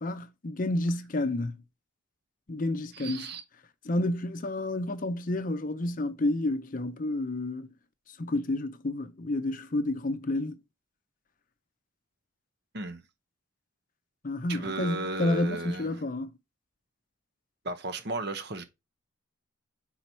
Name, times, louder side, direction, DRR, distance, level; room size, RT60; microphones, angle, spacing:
voice 1, 0.0-1.6 2.5-3.3 3.8-7.7 8.2-10.6 14.2-16.3, left 1 dB, 40° left, 0.6 m, -30 dB
voice 2, 2.9-3.4 12.7-13.0 14.5-15.9 17.6-18.6, right 2 dB, 50° right, 0.9 m, -34 dB
5.6 x 4.2 x 4.4 m
head